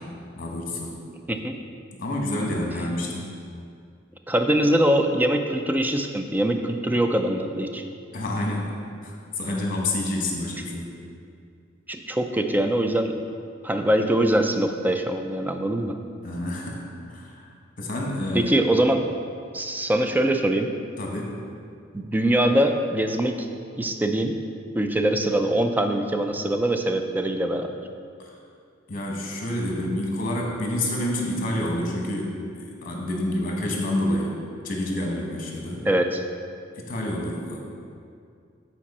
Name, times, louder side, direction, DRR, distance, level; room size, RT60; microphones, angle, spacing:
voice 1, 0.4-1.0 2.0-3.3 8.1-8.7 9.0-10.9 16.2-18.5 21.0-21.3 28.2-28.3 28.9-34.4 34.6-35.8 36.7-37.6, left 1 dB, 45° left, -1 dB, 1.1 m, -28 dB
voice 2, 4.3-7.8 11.9-13.1 13.6-16.0 18.3-19.0 19.5-20.7 21.9-23.3 23.8-24.4 24.7-27.7 35.8-36.2, right 1 dB, 10° right, 6 dB, 0.3 m, -23 dB
7.4 x 4.4 x 4.2 m, 2.3 s
head